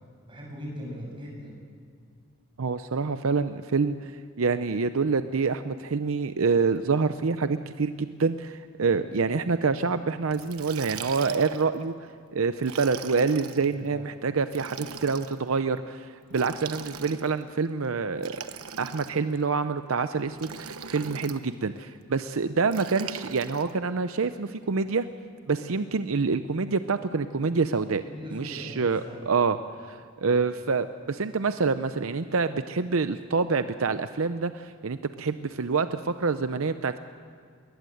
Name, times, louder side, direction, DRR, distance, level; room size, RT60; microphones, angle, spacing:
voice 1, 0.3-1.6 8.8-9.2 13.7-14.1 28.0-29.5 30.2-30.4, equal, 25° right, -2 dB, 7.4 m, -41 dB
voice 2, 2.6-18.3 18.8-25.0 25.5-28.0 28.3-29.6 29.9-37.0, right 4 dB, 70° right, 11 dB, 0.6 m, -27 dB
Liquid, 10.3-11.7 12.6-13.7 14.5-15.4 16.3-17.4 18.2-19.4 20.4-21.4 22.7-23.7, right 6 dB, 85° right, 1.1 m, -40 dB
21.5 x 19.5 x 7.9 m, 2.2 s
head